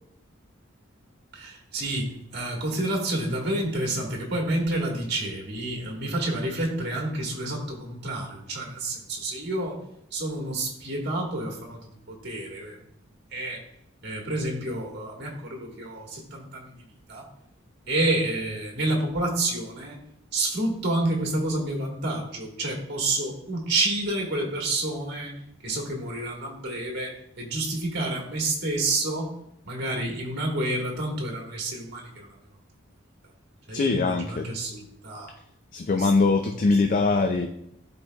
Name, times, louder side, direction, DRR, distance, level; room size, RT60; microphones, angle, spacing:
voice 1, 1.3-9.8 10.1-12.8 13.3-13.6 14.0-17.3 17.9-20.0 20.3-25.3 25.6-29.3 29.6-32.4 33.7-35.3 35.9-36.5, right 2 dB, 55° right, -1 dB, 1.5 m, -29 dB
voice 2, 33.7-34.5 35.7-37.5, left 3 dB, 40° left, 5 dB, 0.4 m, -22 dB
11.5 x 4.1 x 2.3 m, 0.75 s
head